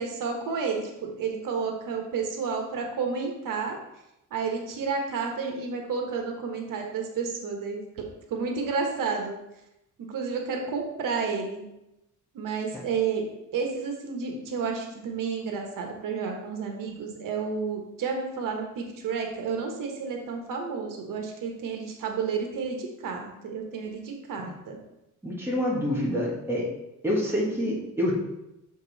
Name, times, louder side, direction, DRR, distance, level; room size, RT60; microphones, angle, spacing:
voice 1, 0.0-3.8 4.3-8.0 8.3-9.3 10.0-11.6 12.3-13.2 13.5-24.8, right 5 dB, 90° right, 2 dB, 1.4 m, -31 dB
voice 2, 25.2-26.7 27.0-28.1, equal, 10° right, -4 dB, 1.5 m, -27 dB
6.7 x 5.4 x 4.1 m, 0.89 s
cardioid pair, 175°, 32 cm